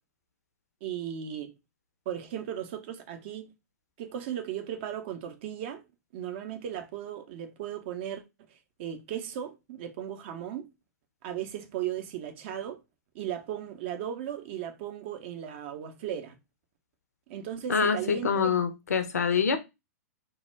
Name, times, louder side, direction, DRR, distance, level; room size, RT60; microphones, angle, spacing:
voice 1, 0.8-1.5 2.1-3.5 4.0-5.8 6.1-8.2 8.8-10.7 11.2-12.8 13.1-16.4 17.3-18.5, right 10 dB, 45° right, 0.5 m, -36 dB
voice 2, 17.7-19.6, left 6 dB, 70° left, 0.5 m, -25 dB
2.1 x 2.1 x 3.2 m
figure-of-eight pair, 100°, 9 cm